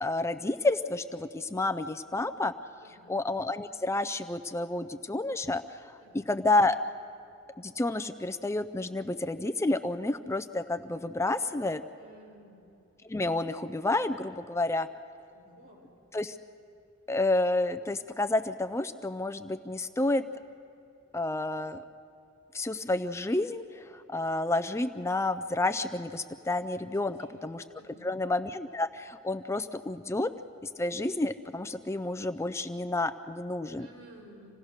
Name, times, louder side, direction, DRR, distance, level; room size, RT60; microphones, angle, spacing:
voice 1, 0.0-2.5 3.1-5.6 6.3-6.8 7.6-11.8 13.1-14.9 16.1-16.3 17.1-20.2 21.1-21.8 22.5-23.6 24.1-27.2 27.4-27.6 28.0-30.3 30.6-33.9, left 2 dB, 15° left, 11 dB, 0.4 m, -30 dB
voice 2, 2.8-3.2 6.0-6.4 11.9-12.6 15.3-15.9 26.9-27.4 27.7-28.2 33.8-34.5, right 1 dB, 65° right, -4 dB, 6.3 m, -54 dB
27.0 x 17.5 x 6.5 m, 2.8 s
head